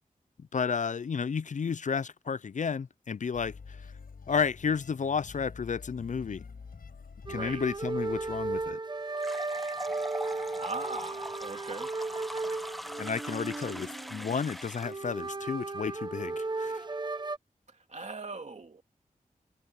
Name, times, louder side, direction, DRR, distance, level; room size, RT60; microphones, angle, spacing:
voice 1, 0.4-3.8 4.3-6.4 7.3-8.8 13.0-16.9, left 6 dB, 55° left, 0.5 m, -32 dB
sound 1, 3.3-8.8, left 5 dB, 85° left, 7.3 m, -48 dB
sound 2, 7.3-17.4, right 3 dB, 30° right, 0.9 m, -35 dB
voice 2, 7.3-7.6 10.6-11.9 17.9-18.8, right 3 dB, 50° right, 2.7 m, -39 dB
sound 3, 9.1-15.1, equal, ahead, 0.7 m, -42 dB
wide cardioid pair, 70°, 15 cm